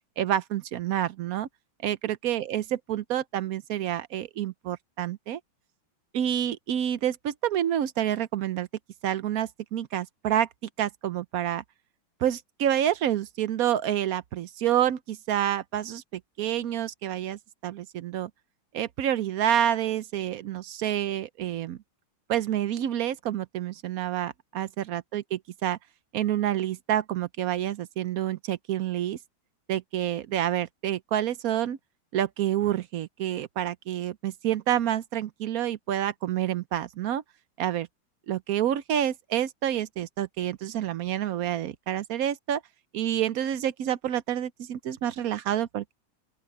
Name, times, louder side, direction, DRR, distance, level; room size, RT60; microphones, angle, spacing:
voice 1, 0.2-1.5 1.8-2.6 2.9-5.4 6.1-8.7 9.0-10.5 10.8-11.6 12.2-18.3 18.7-21.8 22.3-25.8 26.1-29.2 29.7-31.8 32.1-37.2 37.6-37.9 38.3-42.6 42.9-45.9, right 11 dB, 65° right, 0.9 m, -28 dB
open air
omnidirectional pair, 2.1 m